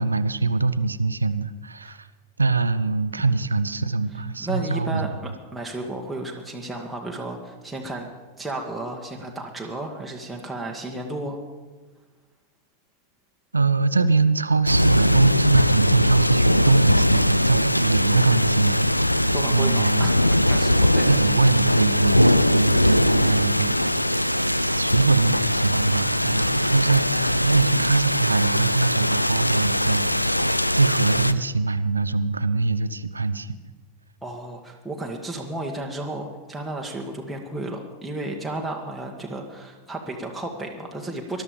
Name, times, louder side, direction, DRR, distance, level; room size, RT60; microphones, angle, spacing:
voice 1, 0.0-2.1 2.4-5.1 13.5-20.0 21.1-24.1 24.6-33.5, right 3 dB, 80° right, 14 dB, 0.5 m, -23 dB
voice 2, 4.4-8.1 8.4-11.4 19.3-20.1 20.4-21.2 34.2-41.4, right 2 dB, 5° right, -1 dB, 1.7 m, -33 dB
sound 1, 14.7-31.3, left 1 dB, 90° left, 0.4 m, -21 dB
20.0 x 12.0 x 5.1 m, 1.3 s
figure-of-eight pair, 90°, 0 cm